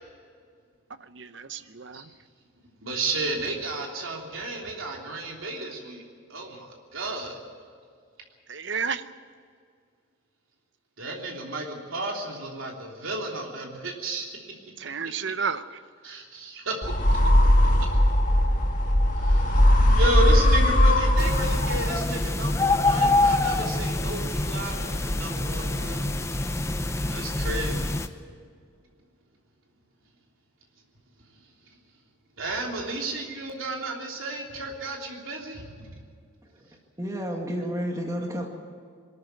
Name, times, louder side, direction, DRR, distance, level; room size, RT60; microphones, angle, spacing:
voice 1, 1.2-2.0 8.5-9.0 14.8-15.6, right 6 dB, 65° right, 12 dB, 0.8 m, -31 dB
voice 2, 2.8-6.0 6.3-7.4 11.0-14.3 16.0-16.8 17.8-17.9 19.1-19.6 19.8-26.0 27.1-28.0 32.4-35.9, right 2 dB, 85° right, 0 dB, 3.3 m, -32 dB
sound 1, 16.8-22.1, left 1 dB, 40° left, 1.9 m, -19 dB
sound 2, 21.2-28.1, left 2 dB, 15° left, 0.7 m, -26 dB
voice 3, 37.0-38.5, equal, 15° right, 1 dB, 2.1 m, -30 dB
22.0 x 13.5 x 9.2 m, 2.1 s
head